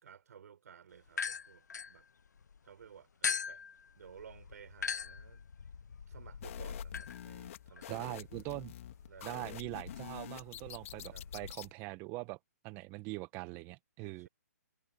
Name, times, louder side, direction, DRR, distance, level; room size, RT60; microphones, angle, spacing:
voice 1, 0.0-2.1 2.6-3.6 4.0-5.5 6.1-8.2 9.1-9.5 11.1-11.3 14.0-14.3, right 7 dB, 70° right, 4.5 m, -56 dB
sound 1, 1.1-2.6 3.2-11.5, left 6 dB, 85° left, 0.7 m, -42 dB
sound 2, 6.4-11.7, left 12 dB, 50° left, 2.6 m, -48 dB
voice 2, 7.9-8.7 9.2-12.4 12.6-14.3, right 23 dB, 25° right, 1.2 m, -42 dB
hypercardioid pair, 145°, 9 cm